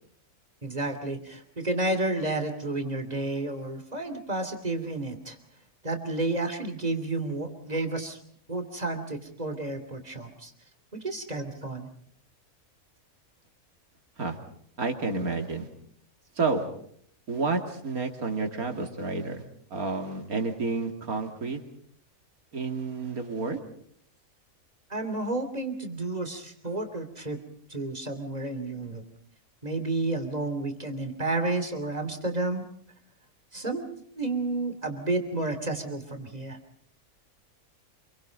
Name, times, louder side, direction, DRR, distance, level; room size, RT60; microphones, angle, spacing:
voice 1, 0.6-5.4 5.8-8.2 8.5-10.5 10.9-11.9 24.9-27.4 27.7-29.0 29.6-32.6 33.5-33.9 34.2-36.6, right 2 dB, 25° right, 7 dB, 3.1 m, -31 dB
voice 2, 14.8-15.7 16.4-16.6 17.3-19.4 19.7-21.6 22.5-23.6, right 3 dB, 80° right, 4 dB, 3.0 m, -30 dB
28.0 x 23.0 x 5.2 m, 0.64 s
omnidirectional pair, 1.5 m